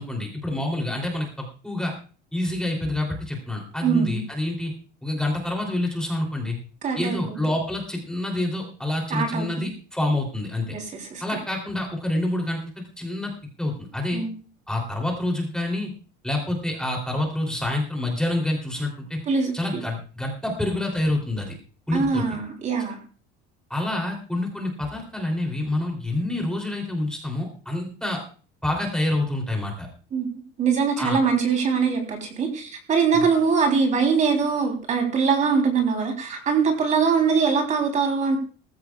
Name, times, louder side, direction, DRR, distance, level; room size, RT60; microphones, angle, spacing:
voice 1, 0.0-1.9 2.3-4.7 5.0-6.6 7.0-10.7 11.2-13.3 13.6-14.2 14.7-15.9 16.2-19.2 19.5-21.6 21.9-22.2 23.7-28.2 28.6-29.9 31.0-31.2 33.1-33.3, left 1 dB, 5° left, 0 dB, 3.2 m, -27 dB
voice 2, 3.8-4.2 6.8-7.4 9.1-9.7 10.7-11.2 14.1-14.3 19.3-19.5 21.9-23.0 30.1-30.3 30.6-38.4, right 5 dB, 35° right, 3 dB, 3.5 m, -22 dB
19.0 x 15.5 x 2.4 m, 0.38 s
cardioid pair, 150°, 21 cm